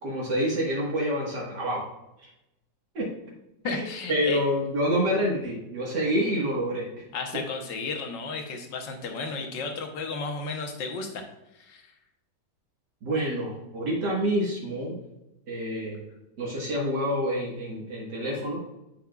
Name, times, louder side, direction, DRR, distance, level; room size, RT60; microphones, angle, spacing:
voice 1, 0.0-1.9 2.9-3.1 3.6-6.9 13.0-15.0 15.5-16.0 16.4-18.6, equal, 70° right, -4 dB, 2.2 m, -27 dB
voice 2, 3.6-4.4 7.1-11.2 11.6-11.9, left 4 dB, 85° left, 4 dB, 1.8 m, -33 dB
7.6 x 7.2 x 2.4 m, 0.92 s
omnidirectional pair, 1.9 m